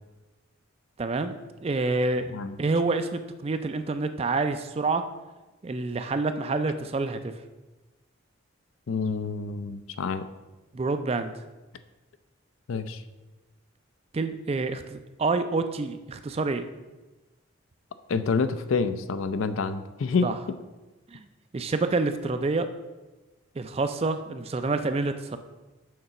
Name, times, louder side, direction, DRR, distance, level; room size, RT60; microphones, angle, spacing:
voice 1, 1.0-1.3 1.6-2.3 2.6-5.0 5.6-7.3 10.7-11.3 14.1-16.6 20.2-20.3 21.1-21.3 21.5-22.7 23.6-25.4, right 3 dB, 30° right, 9 dB, 0.3 m, -27 dB
voice 2, 8.9-10.2 12.7-13.0 18.1-20.4, left 4 dB, 70° left, 11 dB, 0.4 m, -27 dB
6.5 x 3.9 x 5.7 m, 1.1 s
head